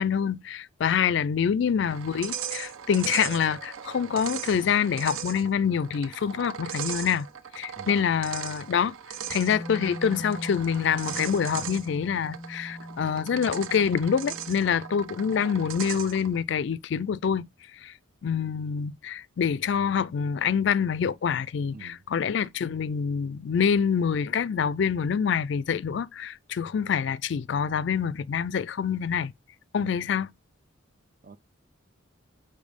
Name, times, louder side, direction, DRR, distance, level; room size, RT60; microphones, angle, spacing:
voice 1, 0.0-7.3 7.6-8.9 9.3-17.5 17.8-17.9 18.2-29.3 29.7-30.3, left 7 dB, 60° left, 0.3 m, -26 dB
sound 1, 1.9-16.4, right 9 dB, 85° right, 0.6 m, -38 dB
Wind instrument woodwind instrument, 9.2-15.4, left 1 dB, 10° right, 1.3 m, -41 dB
voice 2, 21.7-22.0 29.8-30.0 31.2-31.4, right 4 dB, 40° right, 0.5 m, -46 dB
5.3 x 4.2 x 5.1 m
head